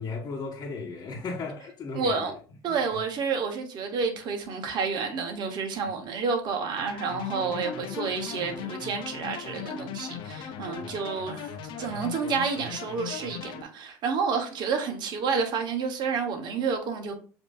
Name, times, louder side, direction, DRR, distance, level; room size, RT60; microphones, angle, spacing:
voice 1, 0.0-2.2 2.7-2.8 10.8-10.9, left 4 dB, 45° left, 1.1 m, -35 dB
voice 2, 1.9-2.3 2.6-17.1, right 5 dB, 55° right, 1.3 m, -30 dB
sound 1, 6.8-13.6, left 8 dB, 60° left, 0.8 m, -38 dB
7.2 x 2.9 x 2.5 m
hypercardioid pair, 80°, 9 cm